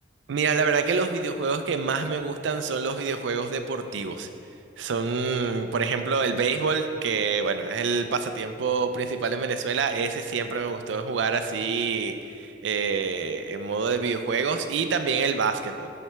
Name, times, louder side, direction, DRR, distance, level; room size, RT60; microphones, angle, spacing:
voice 1, 0.3-4.3 4.8-15.9, right 5 dB, 75° right, 8 dB, 0.4 m, -26 dB
7.3 x 3.3 x 5.8 m, 2.4 s
head